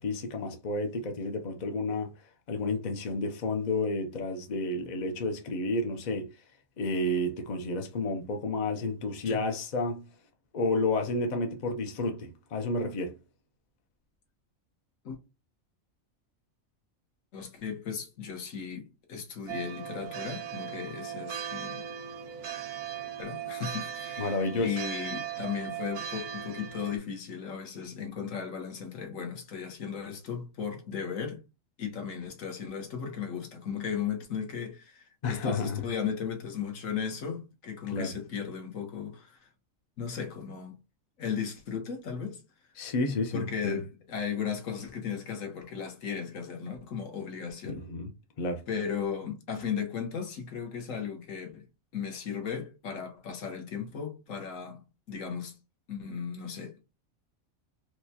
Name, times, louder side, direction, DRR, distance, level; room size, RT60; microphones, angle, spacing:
voice 1, 0.0-6.4 6.8-10.1 10.5-13.2 24.2-24.8 35.2-35.8 37.9-38.1 42.8-43.8 47.6-48.1 48.4-48.6, left 2 dB, 50° left, 0.5 m, -31 dB
voice 2, 17.3-21.8 23.2-31.4 31.8-39.5 40.0-40.8 41.2-42.4 43.3-47.8 48.7-51.6 51.9-55.6 55.9-56.8, left 7 dB, 70° left, 1.3 m, -36 dB
sound 1, 19.5-27.0, right 9 dB, 60° right, 0.8 m, -38 dB
4.6 x 2.2 x 2.7 m
omnidirectional pair, 1.4 m